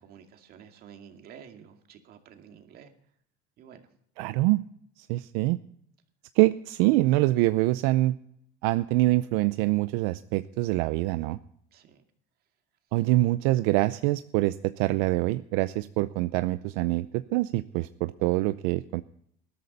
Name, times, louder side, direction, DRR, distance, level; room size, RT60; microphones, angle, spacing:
voice 1, 0.0-2.9 3.6-3.9 11.7-12.0, right 8 dB, 50° right, 5 dB, 2.3 m, -50 dB
voice 2, 4.2-4.6 5.0-5.6 6.4-8.2 8.6-11.4 12.9-19.0, right 18 dB, 80° right, 13 dB, 0.6 m, -25 dB
20.0 x 13.0 x 4.1 m, 0.67 s
cardioid pair, 130°, 20 cm